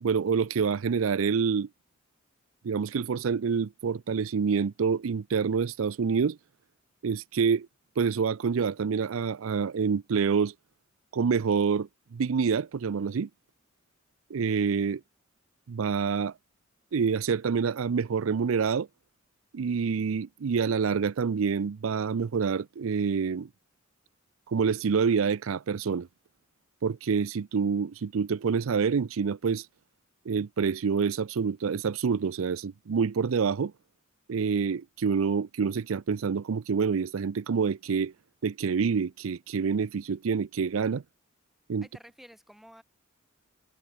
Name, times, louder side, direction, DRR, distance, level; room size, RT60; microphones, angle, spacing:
voice 1, 0.0-1.7 2.6-6.4 7.0-7.7 8.0-10.5 11.1-13.3 14.3-15.0 15.7-16.3 16.9-18.9 19.5-23.5 24.5-26.1 26.8-29.7 30.3-33.7 34.3-38.1 38.4-41.0 41.7-41.9, right 6 dB, 75° right, 0.5 m, -27 dB
voice 2, 41.8-42.8, equal, ahead, 6.5 m, -51 dB
head